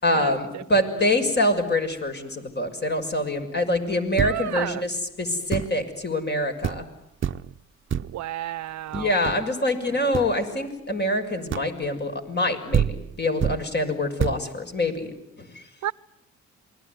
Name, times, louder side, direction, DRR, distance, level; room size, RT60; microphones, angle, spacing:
voice 1, 0.0-6.9 8.9-15.1 15.4-15.6, left 1 dB, 35° left, 6.4 m, -25 dB
sound 1, 4.2-4.7 5.5-5.9 6.3-6.4 6.6-6.9 7.2-7.6 7.9-8.3 8.9-9.6 10.1-10.4 11.5-11.9 12.5-12.6 12.7-13.7 14.2-14.5, right 8 dB, 40° right, 1.0 m, -27 dB
voice 2, 4.2-4.8 8.0-9.2 15.8-15.9, right 13 dB, 65° right, 1.0 m, -31 dB
28.0 x 21.5 x 9.6 m
cardioid pair, 90°, 30 cm